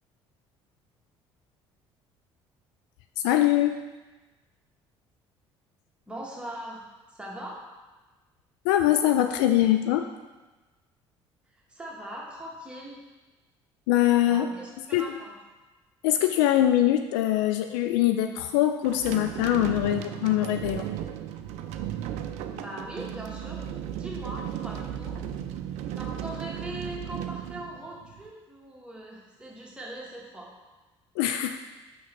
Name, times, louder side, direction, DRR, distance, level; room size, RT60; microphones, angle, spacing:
voice 1, 3.2-3.8 8.6-10.1 13.9-14.5 14.9-15.1 16.0-20.9 31.2-31.6, left 13 dB, 60° left, 7 dB, 0.4 m, -23 dB
voice 2, 6.1-6.8 7.1-7.6 11.5-13.0 14.3-15.3 22.6-23.6 23.9-25.2 26.0-30.5, right 1 dB, 5° right, -4 dB, 1.9 m, -40 dB
sound 1, 18.8-28.3, right 10 dB, 55° right, 0.5 m, -35 dB
6.2 x 6.1 x 4.3 m, 1.2 s
figure-of-eight pair, 55°, 14 cm